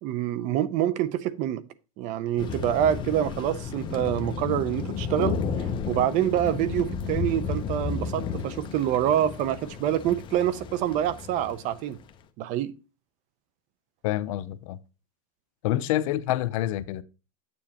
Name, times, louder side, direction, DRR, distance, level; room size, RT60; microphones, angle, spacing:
voice 1, 0.0-1.6 2.0-5.4 5.9-12.0 12.4-12.7, right 11 dB, 40° right, 0.6 m, -26 dB
Thunder, 2.4-12.1, left 6 dB, 25° left, 0.7 m, -33 dB
voice 2, 14.0-14.8 15.6-17.0, left 14 dB, 65° left, 0.6 m, -27 dB
8.5 x 7.0 x 2.9 m
supercardioid pair, 140°, 19 cm